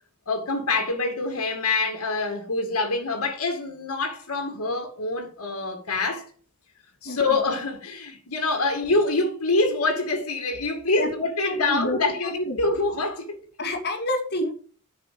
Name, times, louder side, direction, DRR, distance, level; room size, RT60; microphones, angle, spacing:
voice 1, 0.3-6.3 7.0-13.4, left 3 dB, 75° left, 2.2 m, -25 dB
voice 2, 7.0-7.4 11.0-11.1 11.4-12.6 13.6-14.5, left 1 dB, 50° left, 2.5 m, -29 dB
9.7 x 6.2 x 6.8 m
head